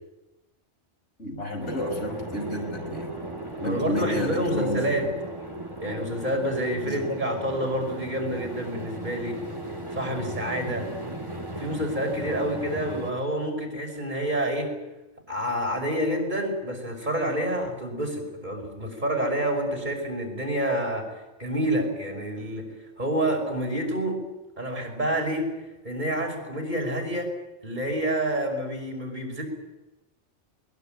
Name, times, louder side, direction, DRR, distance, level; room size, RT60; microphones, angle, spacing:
voice 1, 1.2-3.1 3.6-4.9 6.9-7.0, left 1 dB, 70° left, 1 dB, 6.1 m, -30 dB
sound 1, 1.6-13.1, right 1 dB, 25° right, 2.9 m, -37 dB
voice 2, 3.6-5.1 5.8-9.4 9.9-10.9 11.6-14.7 15.3-21.1 21.4-22.7 23.0-24.2 24.6-25.5 25.8-27.3 27.6-29.4, right 1 dB, 40° right, 3 dB, 6.0 m, -28 dB
22.0 x 21.5 x 9.3 m, 1.0 s
omnidirectional pair, 1.2 m